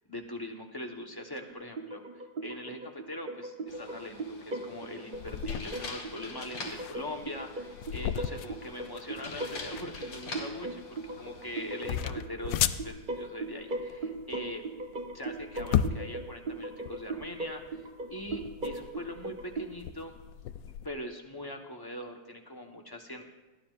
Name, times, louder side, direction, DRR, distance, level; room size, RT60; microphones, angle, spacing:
voice 1, 0.1-10.8 11.2-14.6 15.1-17.8 18.1-20.1 20.8-23.2, left 1 dB, 15° left, 2 dB, 0.9 m, -42 dB
sound 1, 1.5-19.7, right 2 dB, 40° right, 0.7 m, -39 dB
sound 2, 3.7-12.0, left 3 dB, 65° left, 2.4 m, -45 dB
sound 3, 5.1-20.9, left 10 dB, 85° left, 1.3 m, -36 dB
21.5 x 15.0 x 2.5 m, 1.1 s
omnidirectional pair, 2.0 m